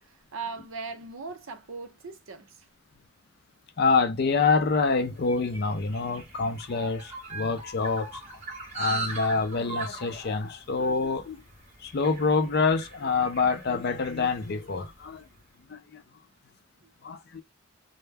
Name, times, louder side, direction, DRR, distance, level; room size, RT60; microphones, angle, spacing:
voice 1, 0.0-2.7, right 4 dB, 70° right, 0.6 m, -39 dB
voice 2, 3.8-8.2 8.7-11.4 11.8-15.3 15.7-16.0 17.0-17.4, left 4 dB, 50° left, 0.4 m, -26 dB
sound 1, 4.6-15.2, right 3 dB, 30° right, 0.9 m, -40 dB
2.2 x 2.1 x 3.2 m
head